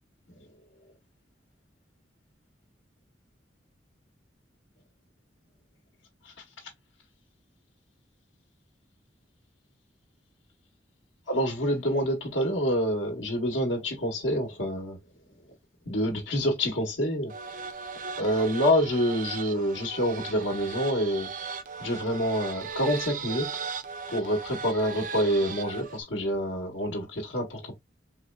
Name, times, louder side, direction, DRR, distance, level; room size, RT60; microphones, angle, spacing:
voice 1, 11.3-15.0 15.9-17.3 18.2-21.3 21.8-23.6 24.1-27.8, equal, 90° left, 1.1 m, -27 dB
sound 1, 17.3-26.0, right 5 dB, 45° right, 0.5 m, -37 dB
4.3 x 3.1 x 2.2 m
head